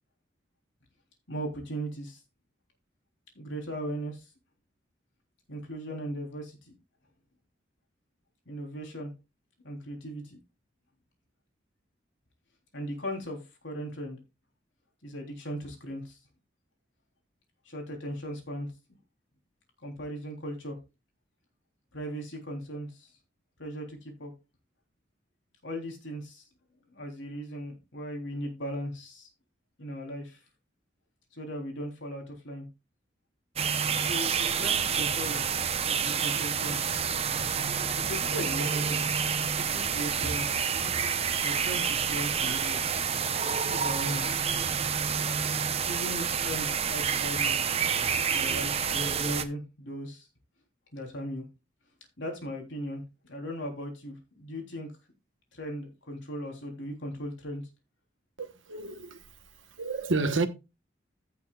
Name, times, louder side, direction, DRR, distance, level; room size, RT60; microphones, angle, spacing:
voice 1, 1.3-2.2 3.4-4.3 5.5-6.8 8.5-9.1 9.6-10.4 12.7-14.2 15.0-16.2 17.7-18.7 19.8-20.8 21.9-23.1 23.6-24.3 25.6-26.4 26.9-29.3 29.8-30.4 31.3-32.7 34.0-36.8 38.0-39.0 39.5-40.6 41.4-42.8 43.4-44.5 45.8-47.6 48.3-50.3 50.9-51.5 52.2-54.9 55.5-57.6, equal, 80° left, 3.5 m, -38 dB
sound 1, 33.6-49.4, right 7 dB, 30° right, 0.8 m, -28 dB
voice 2, 58.4-59.3 59.8-60.5, right 3 dB, 90° right, 1.2 m, -30 dB
15.5 x 6.9 x 2.4 m
head